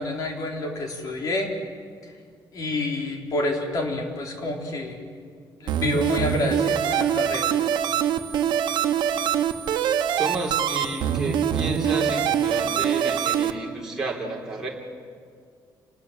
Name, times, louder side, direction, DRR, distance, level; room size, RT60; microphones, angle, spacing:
voice 1, 0.0-1.5 2.5-5.0 5.6-7.5, left 2 dB, 50° left, 2 dB, 3.7 m, -28 dB
sound 1, 5.7-13.5, right 9 dB, 80° right, 1.3 m, -24 dB
voice 2, 10.2-14.7, right 2 dB, 10° right, -4 dB, 3.9 m, -31 dB
28.5 x 20.0 x 7.5 m, 2.1 s
cardioid pair, 160°, 8 cm